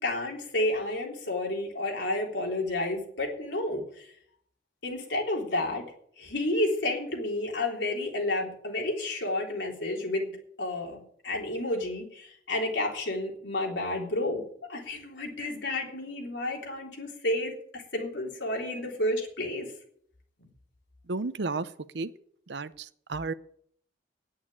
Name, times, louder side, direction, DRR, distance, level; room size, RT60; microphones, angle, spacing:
voice 1, 0.0-4.1 4.8-5.8 6.2-14.4 14.7-19.7, left 1 dB, 85° left, 0 dB, 3.7 m, -31 dB
voice 2, 21.1-22.1 22.5-23.3, right 3 dB, 75° right, 14 dB, 0.7 m, -33 dB
9.8 x 8.5 x 8.7 m, 0.64 s
head